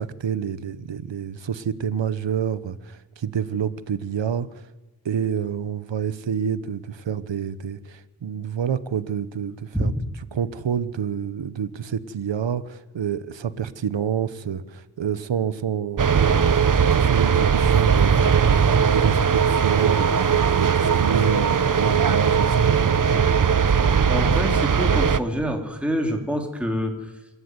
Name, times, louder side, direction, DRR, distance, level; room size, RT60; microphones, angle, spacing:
voice 1, 0.0-4.6 5.0-9.9 10.3-22.9, right 8 dB, 75° right, 15 dB, 1.2 m, -28 dB
sound 1, 16.0-25.2, right 6 dB, 45° right, 1.0 m, -19 dB
voice 2, 24.1-26.9, equal, 5° right, 2 dB, 3.4 m, -26 dB
26.5 x 12.5 x 9.7 m, 1.1 s
wide cardioid pair, 80°, 44 cm